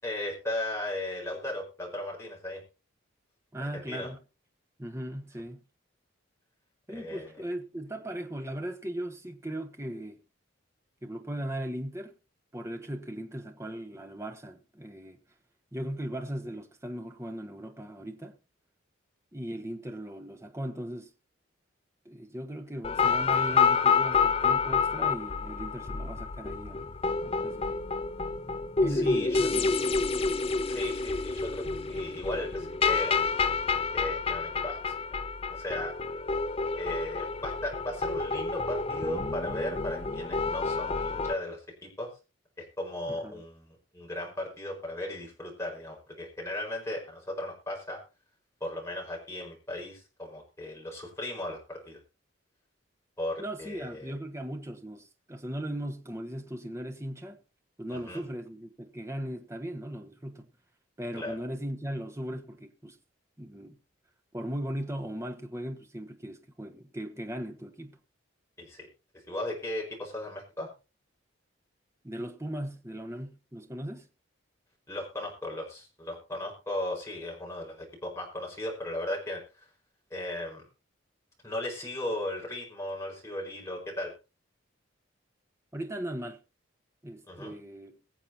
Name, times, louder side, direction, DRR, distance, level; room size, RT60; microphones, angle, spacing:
voice 1, 0.0-2.6 3.6-4.1 6.9-7.3 28.9-29.5 30.7-33.1 33.9-35.1 35.5-35.9 36.7-42.1 42.6-48.0 48.6-52.0 53.2-54.1 57.9-58.2 61.1-61.3 68.6-68.9 69.1-70.7 74.9-79.7 80.1-80.6 81.4-84.1 87.3-87.5, left 1 dB, 15° left, 4.9 m, -36 dB
voice 2, 3.5-4.2 4.8-5.6 6.9-10.2 11.0-12.1 12.5-15.2 15.7-18.4 19.3-21.1 22.0-26.9 27.2-27.8 28.8-29.7 43.1-43.4 53.4-57.4 57.8-60.5 61.0-63.0 63.4-63.8 64.3-68.0 72.0-74.1 85.7-86.4 87.0-88.0, right 1 dB, 15° right, 1.1 m, -38 dB
sound 1, 22.8-41.3, left 4 dB, 30° left, 0.5 m, -28 dB
22.5 x 7.6 x 2.8 m
head